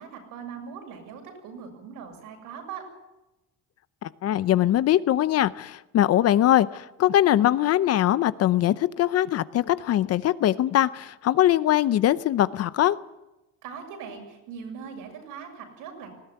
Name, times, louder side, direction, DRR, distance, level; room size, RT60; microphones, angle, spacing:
voice 1, 0.0-2.8 13.6-16.1, right 6 dB, 75° right, 4 dB, 7.2 m, -40 dB
voice 2, 4.0-13.0, left 12 dB, 45° left, 16 dB, 0.7 m, -22 dB
19.5 x 17.0 x 9.8 m, 0.99 s
cardioid pair, 135°, 34 cm